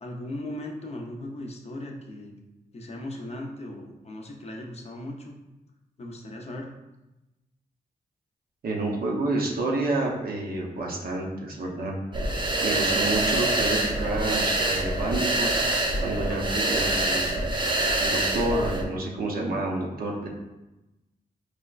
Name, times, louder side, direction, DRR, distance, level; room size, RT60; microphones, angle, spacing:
voice 1, 0.0-2.4 2.7-5.4 6.0-6.7, left 1 dB, 40° left, 0 dB, 0.6 m, -38 dB
voice 2, 8.6-12.0 12.6-15.5 16.0-17.5 18.0-20.3, right 2 dB, 65° right, -1 dB, 0.7 m, -29 dB
sound 1, 12.1-18.8, right 2 dB, 30° right, 0.6 m, -25 dB
4.7 x 2.1 x 2.3 m, 1.0 s
cardioid pair, 65°, 17 cm